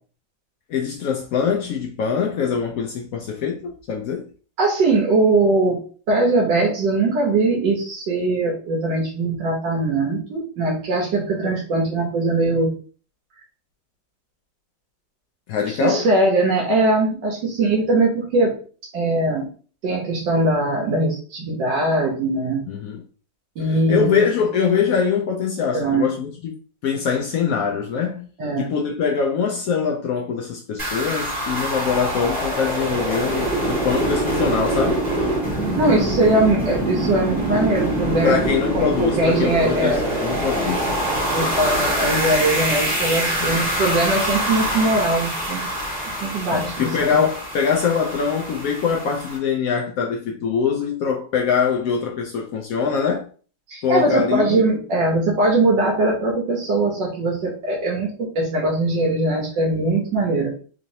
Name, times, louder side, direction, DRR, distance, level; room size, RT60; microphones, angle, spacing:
voice 1, 0.7-4.3 15.5-16.1 22.7-23.0 23.7-26.5 26.8-28.3 28.6-35.0 38.2-40.9 43.4-43.6 46.5-53.3 53.8-54.6, left 6 dB, 80° left, 0.8 m, -23 dB
voice 2, 4.6-5.8 6.1-12.7 15.7-18.5 18.9-19.5 19.8-22.6 23.6-24.1 25.7-26.1 28.4-28.7 35.8-38.3 38.7-40.1 41.3-45.6 46.2-47.1 53.7-60.5, right 2 dB, 75° right, 1.5 m, -21 dB
sound 1, 30.8-49.4, right 1 dB, 20° right, 1.9 m, -24 dB
3.8 x 3.0 x 2.7 m
omnidirectional pair, 2.0 m